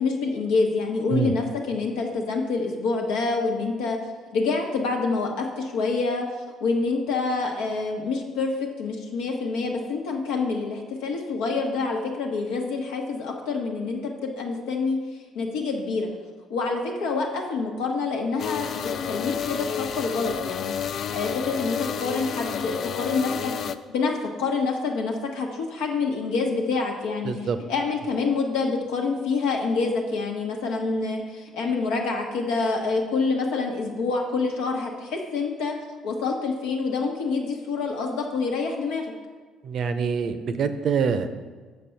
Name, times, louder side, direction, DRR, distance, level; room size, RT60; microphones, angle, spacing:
voice 1, 0.0-4.0 4.3-6.2 6.6-8.5 8.8-15.0 15.3-16.1 16.5-23.6 23.9-27.3 27.7-35.7 36.0-39.1, left 4 dB, 80° left, 1 dB, 1.1 m, -27 dB
sound 1, 18.4-23.8, left 8 dB, 60° left, 0.3 m, -30 dB
voice 2, 27.2-27.6 39.6-41.3, right 6 dB, 60° right, 10 dB, 0.6 m, -25 dB
6.6 x 5.2 x 5.8 m, 1.4 s
supercardioid pair, 65°, 0 cm